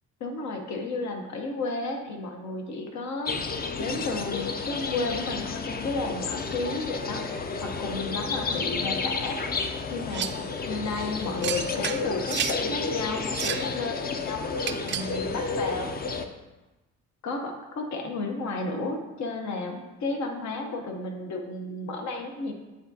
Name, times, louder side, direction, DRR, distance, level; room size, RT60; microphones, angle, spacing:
voice 1, 0.2-3.4 3.8-7.2 7.6-9.4 9.9-10.3 10.7-15.9 17.2-22.5, left 3 dB, 70° left, 3 dB, 0.9 m, -32 dB
sound 1, 3.2-16.3, left 4 dB, 30° left, 0.5 m, -31 dB
sound 2, 10.1-10.5 11.4-12.6 13.2-13.7 14.6-15.2, right 9 dB, 40° right, 0.4 m, -32 dB
9.6 x 3.6 x 2.7 m, 1.1 s
cardioid pair, 90°, 30 cm